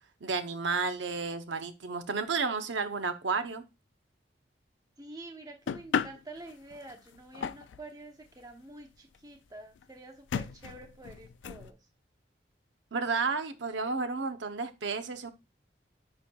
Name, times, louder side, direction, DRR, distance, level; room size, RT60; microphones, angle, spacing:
voice 1, 0.2-3.6 12.9-15.3, right 4 dB, 85° right, 9 dB, 0.8 m, -32 dB
voice 2, 5.0-11.8, right 2 dB, 20° right, 3 dB, 0.8 m, -48 dB
sound 1, 5.7-7.9 8.5-8.6 8.8-8.9 9.1-9.2 9.8-9.9 10.3-11.7, left 7 dB, 85° left, 0.3 m, -35 dB
9.7 x 4.4 x 2.3 m, 0.26 s
head